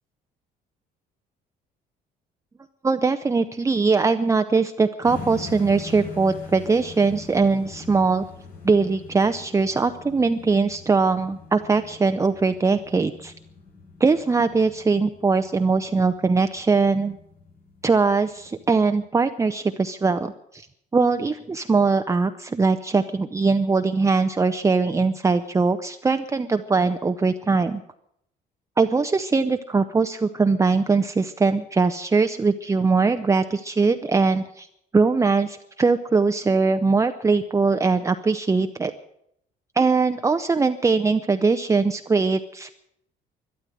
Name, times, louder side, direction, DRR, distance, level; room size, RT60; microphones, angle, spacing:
voice 1, 2.8-8.2 8.6-13.3 14.0-17.2 17.8-20.6 20.9-27.8 28.8-34.7 34.9-38.9 39.8-42.7, right 4 dB, 20° right, 7 dB, 0.7 m, -21 dB
sound 1, 5.0-19.0, left 4 dB, 65° left, 5.7 m, -43 dB
12.5 x 11.5 x 9.0 m, 0.73 s
cardioid pair, 110°, 17 cm